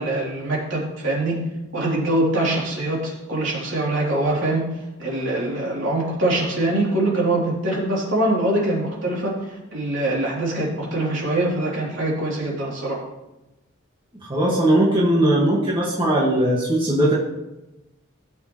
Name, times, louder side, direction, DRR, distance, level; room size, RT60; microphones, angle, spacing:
voice 1, 0.0-1.4 1.7-4.7 5.0-13.0, right 1 dB, 65° right, -4 dB, 3.3 m, -23 dB
voice 2, 14.2-17.1, right 1 dB, 25° right, -6 dB, 1.8 m, -19 dB
16.0 x 6.9 x 3.2 m, 0.98 s
head